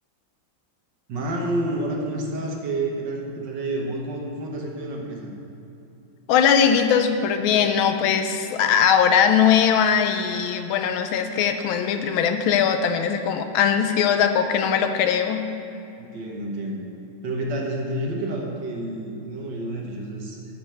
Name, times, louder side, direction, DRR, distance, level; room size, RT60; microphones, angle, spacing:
voice 1, 1.1-5.3 16.0-16.9 17.2-20.4, right 1 dB, 65° right, 0 dB, 1.7 m, -29 dB
voice 2, 6.3-15.4, left 7 dB, 80° left, 7 dB, 1.4 m, -20 dB
9.0 x 5.2 x 7.6 m, 2.7 s
omnidirectional pair, 2.3 m